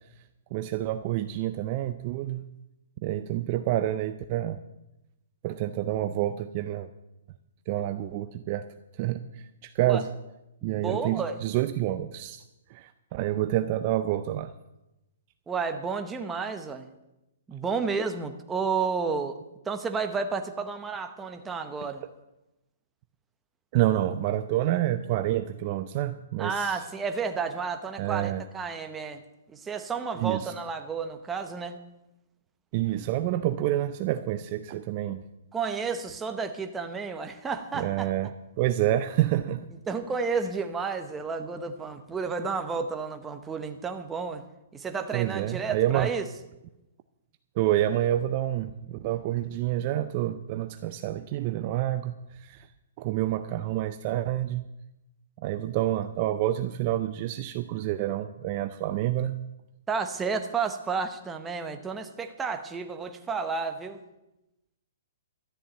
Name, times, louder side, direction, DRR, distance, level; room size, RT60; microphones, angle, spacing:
voice 1, 0.5-2.4 3.0-4.6 5.4-6.9 7.7-8.6 9.0-9.2 9.6-10.1 10.6-12.4 12.7-14.5 23.7-26.8 28.0-28.4 30.2-30.5 32.7-35.2 37.8-38.3 38.6-39.7 45.1-46.1 47.6-52.7 53.0-54.6 55.4-59.3, right 13 dB, 30° right, 10 dB, 0.5 m, -28 dB
voice 2, 10.6-11.4 15.5-16.9 17.5-19.4 19.6-22.0 26.4-29.2 29.5-31.8 35.5-38.1 39.9-44.4 44.7-46.3 59.9-64.0, right 5 dB, 10° right, 6 dB, 0.8 m, -31 dB
13.0 x 7.2 x 9.0 m, 0.94 s
hypercardioid pair, 165°, 0 cm